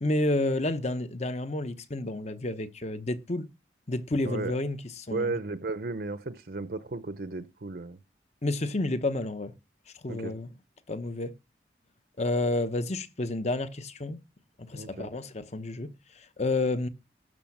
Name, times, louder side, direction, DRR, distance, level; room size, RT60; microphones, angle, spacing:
voice 1, 0.0-3.5 3.9-5.3 8.4-9.5 10.0-10.5 10.9-11.3 12.2-14.2 14.7-15.9 16.2-16.9, left 2 dB, 40° left, 1.0 m, -30 dB
voice 2, 5.1-8.0 10.1-10.3 14.8-15.1, right 3 dB, 55° right, 0.7 m, -34 dB
12.5 x 5.6 x 7.3 m
head